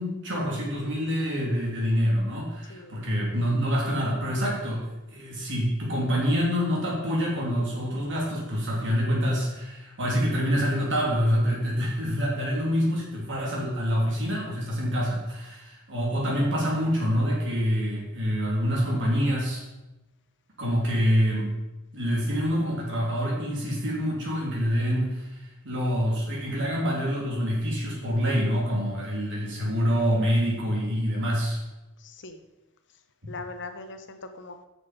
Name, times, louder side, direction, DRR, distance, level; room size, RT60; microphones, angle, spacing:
voice 1, 0.0-19.6 20.6-21.5 21.9-31.6 33.2-33.3, equal, 55° right, -3 dB, 3.1 m, -26 dB
voice 2, 2.7-3.0 32.0-32.4 33.3-34.6, left 3 dB, 55° left, 8 dB, 0.9 m, -41 dB
8.9 x 6.5 x 5.2 m, 1.0 s
head